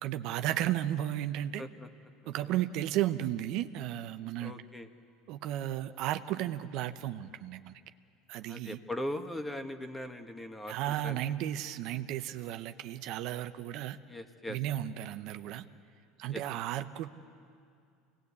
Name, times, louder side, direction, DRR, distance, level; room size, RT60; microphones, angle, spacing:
voice 1, 0.0-1.6 2.3-4.5 5.3-7.7 8.3-8.8 10.7-14.0 14.5-15.6 16.2-17.1, right 12 dB, 65° right, 9 dB, 0.8 m, -34 dB
voice 2, 1.6-1.9 4.4-4.9 8.5-11.4 14.1-14.6 16.3-16.4, left 1 dB, 10° left, 7 dB, 1.6 m, -40 dB
26.5 x 19.0 x 8.5 m, 2.4 s
hypercardioid pair, 85°, 0 cm